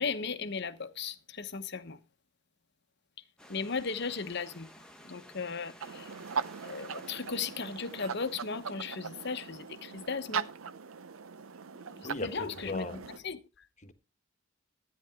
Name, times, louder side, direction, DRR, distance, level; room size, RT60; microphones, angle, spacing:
voice 1, 0.0-2.0 3.5-4.7 5.0-6.2 6.6-10.5 11.9-13.0 13.2-13.6, left 5 dB, 50° left, 0.9 m, -36 dB
Stream / Liquid, 3.4-8.7, equal, 5° left, 1.2 m, -55 dB
Petites oies, 5.8-13.2, right 6 dB, 75° right, 0.6 m, -40 dB
voice 2, 12.0-13.0 13.8-13.9, left 2 dB, 35° left, 1.3 m, -38 dB
13.5 x 9.9 x 3.5 m
head